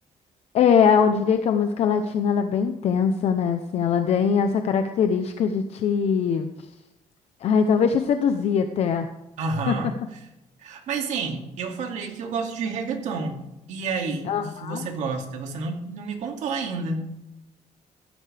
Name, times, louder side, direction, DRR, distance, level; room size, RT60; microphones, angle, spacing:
voice 1, 0.5-6.5 7.4-9.1 9.7-9.8 14.3-14.8, left 6 dB, 55° left, 7 dB, 0.8 m, -22 dB
voice 2, 9.4-9.9 10.6-13.4 13.7-17.1, right 4 dB, 65° right, 2 dB, 2.4 m, -29 dB
15.5 x 12.5 x 3.4 m, 0.92 s
cardioid pair, 175°, 13 cm